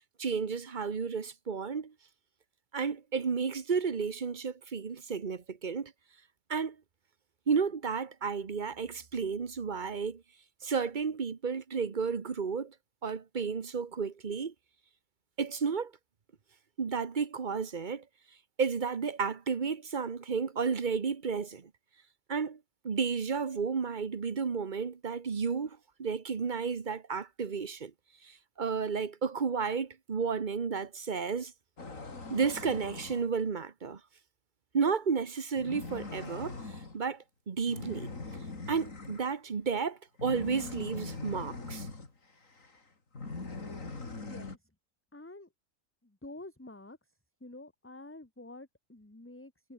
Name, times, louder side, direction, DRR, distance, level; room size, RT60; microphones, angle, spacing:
voice 1, 0.2-1.9 2.7-5.9 6.5-6.8 7.5-10.2 10.6-12.7 13.0-14.5 15.4-15.9 16.8-18.0 18.6-21.7 22.3-22.6 22.8-27.9 28.2-31.5 32.3-34.0 34.7-36.6 36.9-38.1 38.7-41.9, right 5 dB, 40° right, 1.2 m, -32 dB
sound 1, 31.8-33.3 35.5-37.0 37.7-39.3 40.2-42.1 42.5-42.8 43.1-44.6, left 3 dB, 70° left, 3.8 m, -41 dB
voice 2, 44.1-44.6 45.1-45.5 46.0-47.0 47.4-49.7, left 2 dB, 10° left, 1.5 m, -48 dB
omnidirectional pair, 1.4 m